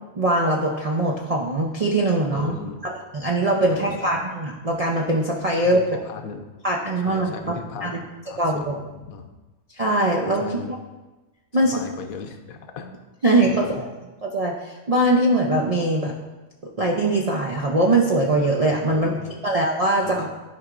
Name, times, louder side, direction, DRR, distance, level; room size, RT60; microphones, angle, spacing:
voice 1, 0.2-2.5 2.8-5.8 6.6-8.0 8.4-8.8 9.7-10.8 11.5-11.7 13.2-13.9 14.2-16.1 16.8-19.1 19.4-20.3, right 1 dB, 55° right, -2 dB, 0.4 m, -22 dB
voice 2, 2.3-2.8 3.7-4.1 5.6-6.4 7.0-8.0 8.3-9.3 10.4-10.7 11.7-12.9 13.4-13.8 18.9-19.3 20.0-20.3, left 5 dB, 80° left, 5 dB, 1.1 m, -37 dB
11.0 x 4.7 x 2.5 m, 1.1 s
omnidirectional pair, 1.5 m